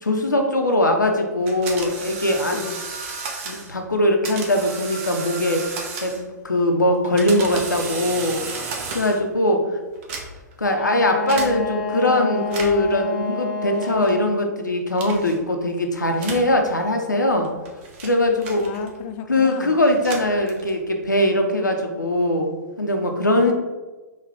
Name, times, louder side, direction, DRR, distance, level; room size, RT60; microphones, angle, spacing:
voice 1, 0.0-2.6 3.5-5.6 6.0-8.4 8.9-9.6 10.6-17.5 18.0-18.6 19.3-23.5, left 1 dB, 90° left, 3 dB, 0.6 m, -21 dB
sound 1, 1.5-3.7 4.2-6.4 6.9-9.3 9.9-10.6 11.3-11.5 12.4-12.9 13.8-14.1 15.0-15.4 16.2-16.5 17.3-19.1 19.8-20.9, right 4 dB, 40° right, 0.6 m, -33 dB
voice 2, 2.5-2.8 18.6-19.8 23.3-23.5, left 7 dB, 30° left, 7 dB, 0.3 m, -34 dB
Wind instrument woodwind instrument, 10.7-14.4, left 4 dB, 10° left, 0.8 m, -29 dB
3.7 x 2.3 x 3.3 m, 1.2 s
figure-of-eight pair, 115°, 10 cm